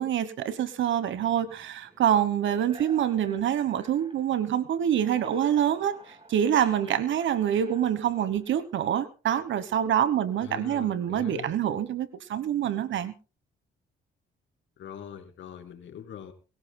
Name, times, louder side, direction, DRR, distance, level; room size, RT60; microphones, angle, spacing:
voice 1, 0.0-13.1, right 10 dB, 70° right, 14 dB, 1.2 m, -26 dB
sound 1, 1.0-4.5 4.8-8.8, right 2 dB, 25° right, 7.2 m, -51 dB
voice 2, 10.4-11.5 14.8-16.3, left 9 dB, 70° left, 6 dB, 2.6 m, -42 dB
23.5 x 16.5 x 2.2 m, 0.32 s
cardioid pair, 90°, 20 cm